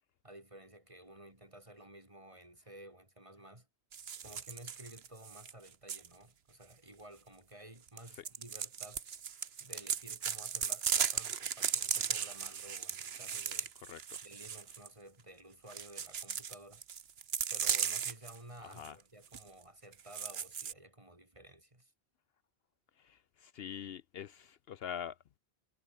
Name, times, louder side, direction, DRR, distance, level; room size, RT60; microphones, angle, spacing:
voice 1, 0.2-3.7 4.2-9.0 9.6-13.7 14.2-16.8 17.5-21.9, right 1 dB, 30° right, 4.1 m, -54 dB
sound 1, 3.9-6.1 7.9-14.9 15.7-18.3 18.7-18.9 19.3-19.4 19.9-20.7, right 7 dB, 70° right, 1.3 m, -36 dB
voice 2, 13.8-14.2 18.6-19.0 23.0-25.4, left 9 dB, 65° left, 0.8 m, -45 dB
omnidirectional pair, 1.1 m